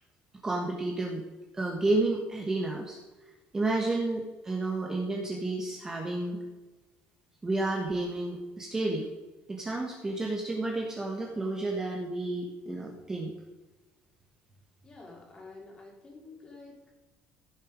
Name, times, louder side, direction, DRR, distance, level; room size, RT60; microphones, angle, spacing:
voice 1, 0.4-1.2 1.5-3.0 3.5-6.4 7.4-9.1 9.5-13.3, right 2 dB, 15° right, 0 dB, 1.3 m, -31 dB
voice 2, 14.8-16.9, left 3 dB, 20° left, -1 dB, 2.9 m, -49 dB
15.5 x 6.9 x 5.1 m, 1.2 s
cardioid pair, 165°, 4 cm